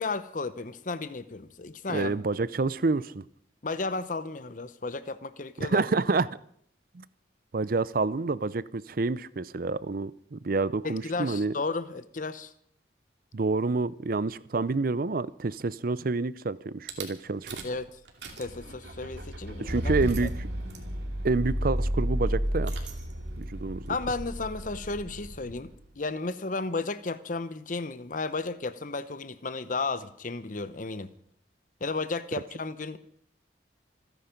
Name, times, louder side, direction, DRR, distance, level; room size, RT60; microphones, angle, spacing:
voice 1, 0.0-2.1 3.6-5.8 10.8-12.5 17.6-17.9 18.4-20.3 23.9-31.1 31.8-33.0, left 3 dB, 45° left, 13 dB, 0.8 m, -33 dB
voice 2, 1.9-3.2 5.6-6.3 6.9-7.0 7.5-11.5 13.3-17.6 19.6-20.5 21.2-22.7 23.4-24.0, right 3 dB, 50° right, 18 dB, 0.6 m, -28 dB
Rattle / Car / Engine starting, 16.9-17.0 17.5-17.8 18.1-25.8, equal, 75° right, 2.8 m, -33 dB
26.5 x 10.0 x 5.2 m, 0.66 s
head